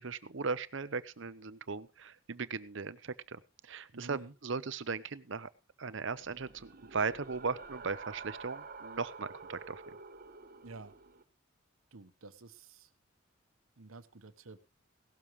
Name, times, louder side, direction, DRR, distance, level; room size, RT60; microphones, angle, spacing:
voice 1, 0.0-5.5 5.8-9.8, right 4 dB, 60° right, 15 dB, 0.8 m, -38 dB
voice 2, 3.9-4.3 10.6-10.9 11.9-12.9 13.8-14.6, right 3 dB, 90° right, 11 dB, 1.2 m, -50 dB
sound 1, 6.1-11.2, right 4 dB, 45° right, 1.2 m, -49 dB
17.5 x 12.5 x 3.2 m, 0.29 s
head